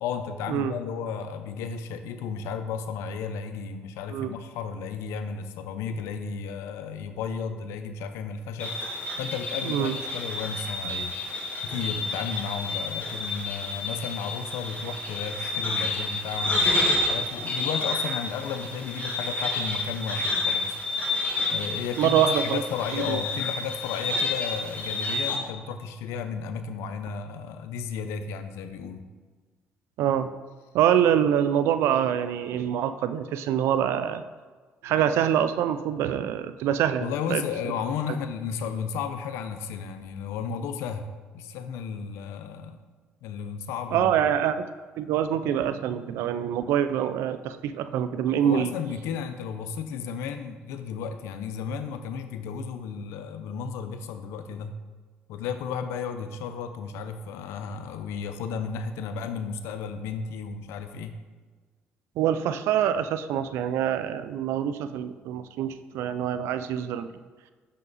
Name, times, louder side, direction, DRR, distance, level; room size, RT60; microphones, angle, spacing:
voice 1, 0.0-8.9 9.2-11.2 11.6-20.8 21.5-29.1 37.0-41.1 41.3-42.8 43.2-44.3 48.4-54.7 55.3-61.2, left 6 dB, 85° left, 8 dB, 0.6 m, -33 dB
sound 1, 8.6-25.4, left 2 dB, 35° left, 1.5 m, -29 dB
voice 2, 9.6-10.0 22.0-22.6 22.9-23.2 30.0-30.3 30.7-34.2 34.8-37.4 43.9-44.6 45.0-48.7 62.2-67.1, right 9 dB, 75° right, 11 dB, 0.3 m, -25 dB
6.0 x 5.6 x 3.9 m, 1.4 s
supercardioid pair, 80°, 4 cm